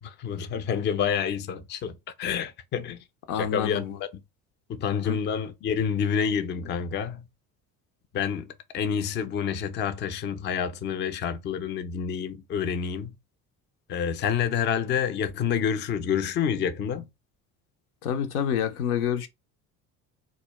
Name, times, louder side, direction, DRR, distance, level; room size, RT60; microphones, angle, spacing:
voice 1, 0.0-3.0 3.3-3.8 4.1-4.2 4.7-7.3 8.1-13.2 13.9-17.1, left 7 dB, 25° left, 0.4 m, -28 dB
voice 2, 3.3-4.0 5.0-5.2 18.0-19.3, left 9 dB, 85° left, 0.5 m, -28 dB
2.2 x 2.1 x 2.9 m
hypercardioid pair, 60°, 43 cm